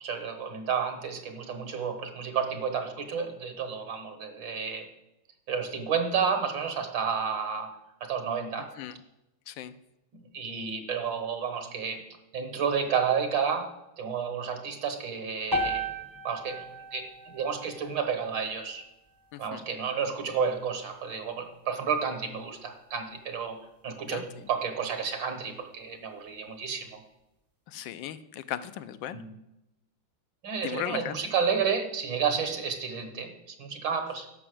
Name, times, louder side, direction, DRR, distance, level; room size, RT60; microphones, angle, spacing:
voice 1, 0.0-4.9 5.5-7.7 8.0-8.7 10.1-12.0 12.3-15.8 16.2-16.6 16.9-18.8 19.4-27.0 29.1-29.4 30.4-34.3, right 6 dB, 70° right, 8 dB, 1.9 m, -31 dB
sound 1, 15.5-19.7, equal, 20° right, 0.6 m, -36 dB
voice 2, 19.3-19.6 24.1-24.2 27.7-29.2 30.6-31.2, left 11 dB, 75° left, 13 dB, 1.3 m, -36 dB
11.0 x 6.1 x 7.6 m, 0.91 s
omnidirectional pair, 2.2 m